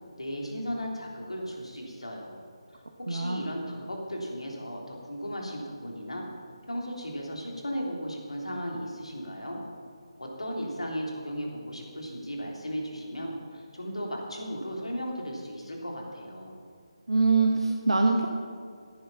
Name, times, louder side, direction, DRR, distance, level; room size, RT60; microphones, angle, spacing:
voice 1, 0.2-2.4 3.1-6.3 6.7-9.6 10.2-16.6, equal, 85° left, -1 dB, 3.5 m, -36 dB
voice 2, 3.1-3.4 17.1-18.3, right 3 dB, 80° right, 1 dB, 1.3 m, -23 dB
14.0 x 10.5 x 5.7 m, 2.1 s
figure-of-eight pair, 155°, 3 cm